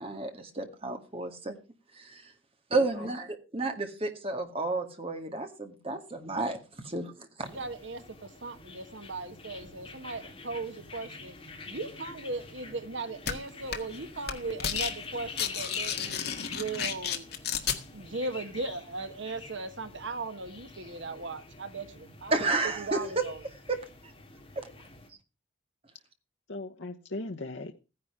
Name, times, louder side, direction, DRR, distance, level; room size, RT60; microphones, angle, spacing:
voice 1, 0.0-1.5 1.9-2.3 2.7-6.6 6.8-7.5 22.3-23.0 23.7-23.8 24.6-24.7, right 3 dB, 30° right, 2.0 m, -31 dB
voice 2, 2.7-3.1 26.5-27.7, left 2 dB, 70° left, 1.1 m, -38 dB
sound 1, 7.4-25.1, left 3 dB, 25° left, 3.0 m, -46 dB
voice 3, 7.5-11.3 11.7-16.2 16.5-17.3 17.9-22.5 22.8-23.4, right 3 dB, 70° right, 1.3 m, -38 dB
sound 2, 13.3-13.4 13.7-14.0 14.2-14.9 15.2-17.8, left 8 dB, 55° left, 1.8 m, -32 dB
15.0 x 10.0 x 5.0 m
head